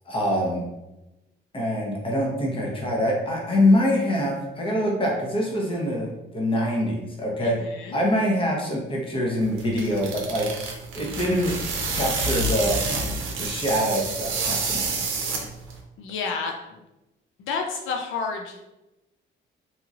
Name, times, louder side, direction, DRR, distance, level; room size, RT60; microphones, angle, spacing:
voice 1, 0.1-0.6 1.5-6.1 6.3-10.5 10.9-11.5 11.9-12.8 13.4-15.0, left 1 dB, 25° left, -2 dB, 0.9 m, -24 dB
voice 2, 7.4-8.0 16.0-16.8 17.4-18.7, left 5 dB, 85° left, 2 dB, 0.4 m, -31 dB
sound 1, 9.4-15.8, right 3 dB, 85° right, 0.6 m, -28 dB
2.9 x 2.8 x 2.4 m, 0.97 s
cardioid pair, 90°, 20 cm